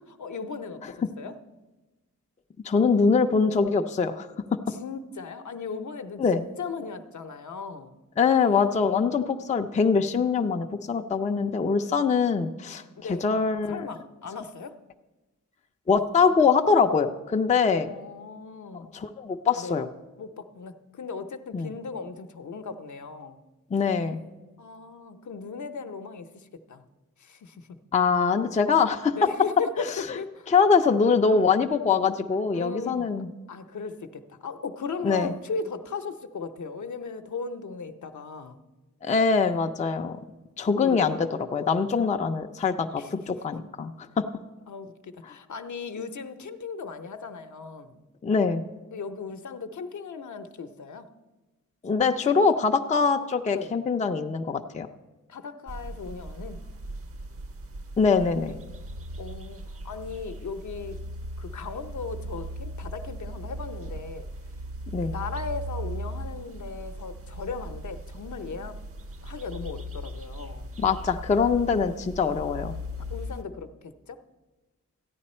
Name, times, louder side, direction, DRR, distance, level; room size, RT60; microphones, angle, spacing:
voice 1, 0.0-1.3 4.7-7.9 13.0-13.3 13.7-14.7 17.8-18.9 19.6-19.8 20.2-23.4 24.6-26.8 27.2-27.8 29.1-30.5 32.5-33.1 33.5-38.6 40.7-41.1 43.0-43.5 44.7-48.1 48.9-51.1 53.5-53.7 55.3-56.6 59.2-61.0 61.4-64.2 65.1-68.8 69.2-70.7 73.1-74.2, left 4 dB, 60° left, 8 dB, 0.7 m, -37 dB
voice 2, 2.6-4.3 6.2-6.4 8.2-12.8 13.1-13.8 15.9-17.9 18.9-19.9 21.5-21.7 23.7-24.2 27.9-29.3 30.5-33.3 35.0-35.3 39.0-40.2 40.6-43.0 43.4-44.2 48.2-48.6 51.8-54.9 58.0-58.6 64.9-65.1 70.8-72.7, left 5 dB, 25° left, 5 dB, 0.4 m, -23 dB
sound 1, 55.7-73.4, equal, 45° right, 0.7 m, -38 dB
14.0 x 9.7 x 4.3 m, 1.1 s
wide cardioid pair, 145°, 32 cm